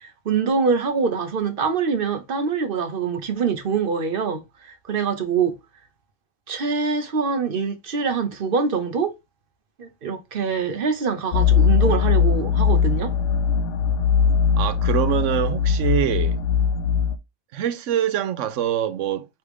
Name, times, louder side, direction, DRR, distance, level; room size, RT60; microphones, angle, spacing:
voice 1, 0.0-5.6 6.5-9.2 9.8-13.1, right 5 dB, 50° right, 0.9 m, -24 dB
sound 1, 11.3-17.1, left 6 dB, 80° left, 0.9 m, -20 dB
voice 2, 14.6-16.4 17.5-19.3, right 11 dB, 80° right, 1.0 m, -24 dB
3.4 x 3.1 x 4.8 m
omnidirectional pair, 1.3 m